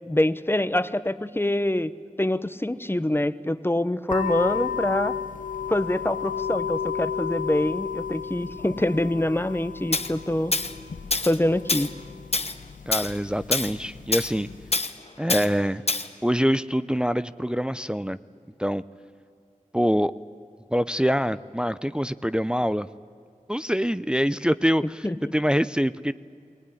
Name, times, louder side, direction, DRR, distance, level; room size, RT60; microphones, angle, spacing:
voice 1, 0.1-1.9 2.2-5.1 5.7-10.5 11.2-11.9 25.0-25.3, left 1 dB, 15° left, 14 dB, 0.8 m, -25 dB
sound 1, 4.1-14.7, left 7 dB, 75° left, 0.8 m, -33 dB
Tools, 9.9-10.1 10.5-10.7 11.1-11.4 11.7-11.9 12.3-12.5 12.9-13.1 13.5-13.7 14.1-14.3 14.7-14.9 15.3-15.5 15.9-16.1, left 3 dB, 50° left, 1.1 m, -25 dB
voice 2, 12.9-14.5 15.2-15.8 16.2-18.2 18.6-18.8 19.7-20.1 20.7-22.9 23.5-25.1 25.3-26.1, equal, 5° right, 14 dB, 0.5 m, -24 dB
20.0 x 18.5 x 9.9 m, 2.4 s
wide cardioid pair, 50°, 14 cm